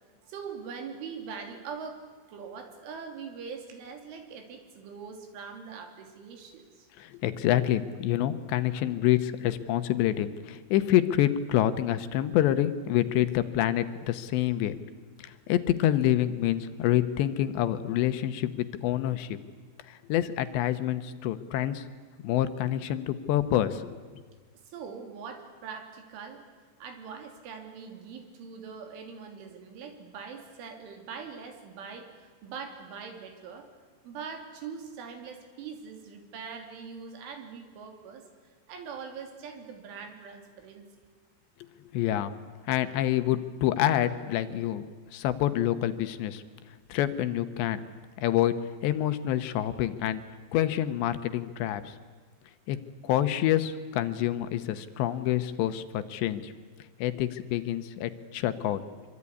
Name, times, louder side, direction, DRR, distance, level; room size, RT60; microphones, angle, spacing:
voice 1, 0.3-6.9 24.7-26.5 26.8-33.7 34.0-38.2 38.7-40.9, right 6 dB, 85° right, 5 dB, 5.5 m, -42 dB
voice 2, 7.0-14.8 15.2-19.4 19.9-21.8 22.2-24.0 41.9-42.4 42.7-44.8 45.1-46.4 46.9-47.9 48.2-48.5 48.8-50.2 50.5-52.0 52.7-52.8 53.0-56.5 57.0-58.8, left 12 dB, 75° left, 11 dB, 3.1 m, -27 dB
25.0 x 24.0 x 9.7 m, 1.5 s
omnidirectional pair, 5.5 m